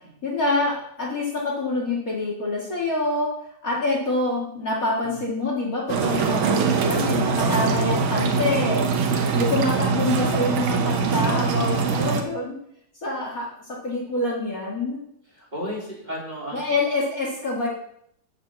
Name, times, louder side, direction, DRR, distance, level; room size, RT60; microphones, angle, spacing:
voice 1, 0.2-3.3 3.6-8.9 9.3-12.6 13.0-15.0 16.5-17.7, left 2 dB, 40° left, -4 dB, 2.4 m, -26 dB
sound 1, 5.9-12.2, right 5 dB, 75° right, 1.8 m, -23 dB
voice 2, 9.0-9.8 15.4-16.7, equal, 20° right, -5 dB, 3.6 m, -35 dB
7.4 x 6.7 x 7.5 m, 0.70 s
omnidirectional pair, 2.3 m